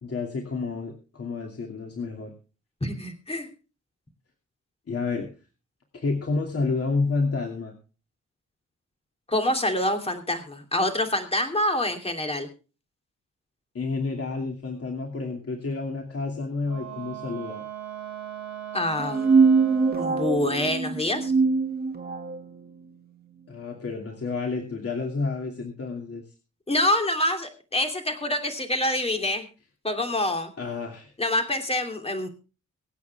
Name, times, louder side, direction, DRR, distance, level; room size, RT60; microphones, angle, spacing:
voice 1, 0.0-2.3 4.9-5.3 5.9-7.7 13.7-17.6 23.5-26.2 30.6-31.1, left 4 dB, 50° left, 1 dB, 2.7 m, -30 dB
voice 2, 2.8-3.5 9.3-12.5 18.7-19.4 20.0-21.3 26.7-29.5 29.8-30.5 31.2-32.3, left 1 dB, 20° left, 5 dB, 2.8 m, -26 dB
Wind instrument woodwind instrument, 16.6-20.3, right 11 dB, 55° right, 3.8 m, -38 dB
sound 1, 19.0-22.4, right 4 dB, 30° right, 2.4 m, -22 dB
24.5 x 8.4 x 3.5 m, 0.34 s
wide cardioid pair, 130°, 31 cm